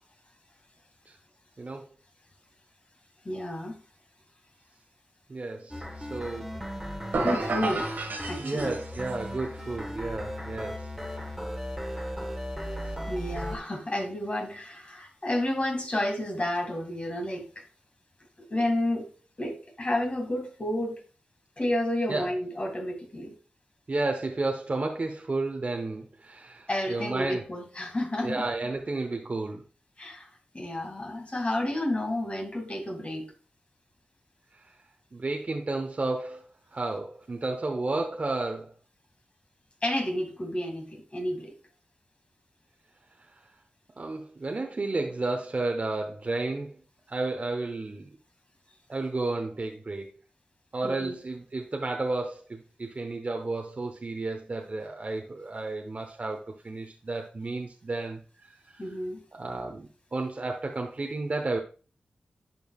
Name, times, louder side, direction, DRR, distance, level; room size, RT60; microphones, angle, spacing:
voice 1, 3.2-3.8 7.2-7.9 8.3-8.7 13.1-17.7 18.5-19.1 19.4-21.0 21.6-23.4 26.7-28.5 30.0-33.3 39.8-41.5 50.8-51.2 58.8-59.2, left 1 dB, 40° left, 2.0 m, -31 dB
voice 2, 5.3-6.5 8.4-10.9 22.1-22.3 23.9-27.4 28.2-29.6 35.1-36.4 36.7-38.7 44.0-46.8 47.1-48.1 48.9-50.1 50.7-58.8 59.3-61.6, right 2 dB, 50° right, 0.9 m, -32 dB
sound 1, 5.7-13.6, equal, ahead, 1.5 m, -36 dB
sound 2, 7.1-9.2, right 3 dB, 80° right, 1.5 m, -31 dB
10.5 x 4.6 x 2.4 m
cardioid pair, 40°, 3 cm